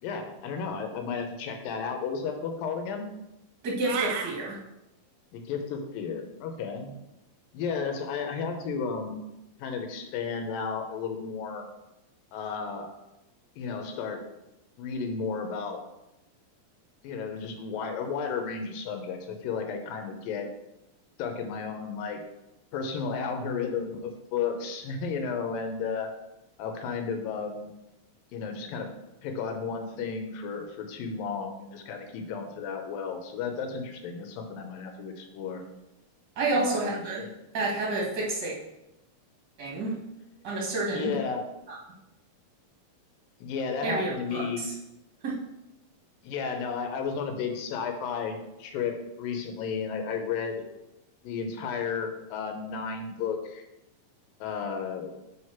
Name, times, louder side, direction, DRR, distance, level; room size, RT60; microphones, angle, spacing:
voice 1, 0.0-3.1 5.3-7.0 7.5-9.2 9.6-11.6 12.3-13.0 13.6-14.2 14.8-15.8 17.0-20.5 21.2-22.2 22.7-26.1 26.6-27.7 28.3-28.9 29.2-35.6 36.5-37.3 40.9-41.4 43.4-44.7 46.2-50.6 51.2-53.6 54.4-55.1, left 5 dB, 90° left, 5 dB, 2.6 m, -33 dB
voice 2, 3.6-4.6 36.4-37.2 37.5-38.6 39.6-40.0 40.4-41.1 41.7-41.8 43.8-44.7 45.2-45.4, right 2 dB, 40° right, -4 dB, 1.9 m, -29 dB
sound 1, 3.8-4.3, right 7 dB, 75° right, 2.0 m, -31 dB
5.1 x 4.9 x 5.7 m, 0.92 s
omnidirectional pair, 3.9 m